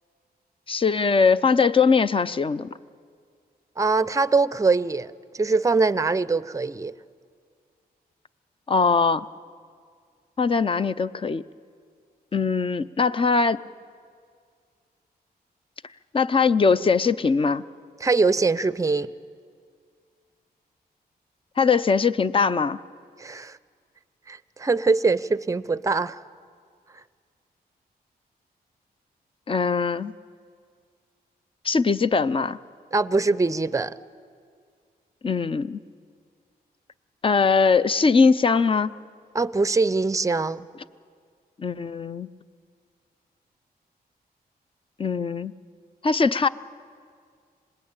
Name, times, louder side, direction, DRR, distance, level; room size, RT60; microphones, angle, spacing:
voice 1, 0.7-2.7 8.7-9.3 10.4-11.4 12.3-13.6 16.1-17.6 21.6-22.8 29.5-30.1 31.6-32.6 35.2-35.8 37.2-38.9 41.6-42.3 45.0-45.5 46.0-46.5, left 5 dB, 35° left, 0.6 m, -21 dB
voice 2, 3.8-6.9 18.0-19.1 23.2-23.6 24.3-26.2 32.9-34.0 39.3-40.7, right 3 dB, 20° right, 0.6 m, -23 dB
26.0 x 19.5 x 8.8 m
wide cardioid pair, 110°, 16 cm